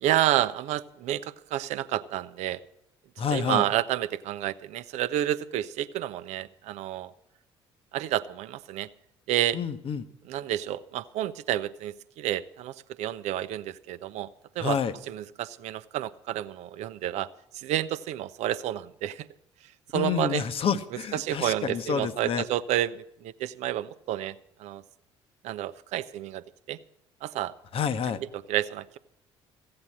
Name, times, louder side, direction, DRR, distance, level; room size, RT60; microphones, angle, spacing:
voice 1, 0.0-2.6 3.3-7.1 7.9-8.9 9.3-9.6 10.3-14.3 14.5-14.8 15.1-17.3 17.5-19.3 19.9-20.4 21.1-24.3 24.6-24.8 25.4-26.8 27.2-27.5 28.3-29.0, right 12 dB, 50° right, 14 dB, 0.7 m, -30 dB
voice 2, 3.2-3.6 9.5-10.0 14.6-14.9 19.9-22.4 27.7-28.2, left 7 dB, 40° left, 12 dB, 1.0 m, -28 dB
15.5 x 8.7 x 7.3 m, 0.81 s
figure-of-eight pair, 55°, 14 cm